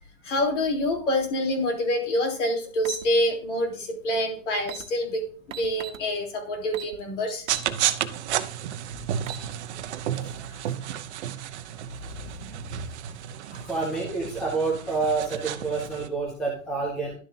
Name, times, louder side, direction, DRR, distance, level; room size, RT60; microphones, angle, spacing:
voice 1, 0.2-5.2 5.5-7.4 13.5-13.6, left 1 dB, 60° left, 2 dB, 3.7 m, -26 dB
sound 1, 2.8-3.0 4.3-4.4 4.6-4.9 5.5-6.0 6.7-7.0 7.5-7.7 8.1-8.2 9.0-9.5, right 10 dB, 75° right, 1.3 m, -37 dB
sound 2, 7.5-16.1, right 10 dB, 55° right, 0.9 m, -32 dB
voice 2, 10.1-10.7 13.7-17.1, right 4 dB, ahead, -2 dB, 0.3 m, -29 dB
12.0 x 7.0 x 2.8 m, 0.39 s
hypercardioid pair, 150°, 40 cm